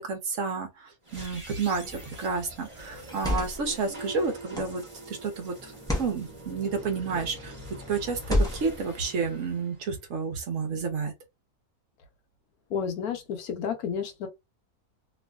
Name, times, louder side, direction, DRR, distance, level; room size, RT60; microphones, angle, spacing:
voice 1, 0.0-5.7 6.0-7.6 7.9-11.1, right 5 dB, 60° right, 1.1 m, -31 dB
sound 1, 1.0-10.3, right 1 dB, 20° right, 1.2 m, -44 dB
sound 2, 1.8-2.2 3.0-3.7 4.5-4.9 5.7-6.2 7.0-7.4 8.2-8.8, left 1 dB, 5° left, 0.4 m, -29 dB
voice 2, 12.7-14.3, left 7 dB, 75° left, 1.2 m, -31 dB
3.0 x 2.5 x 2.3 m
omnidirectional pair, 1.6 m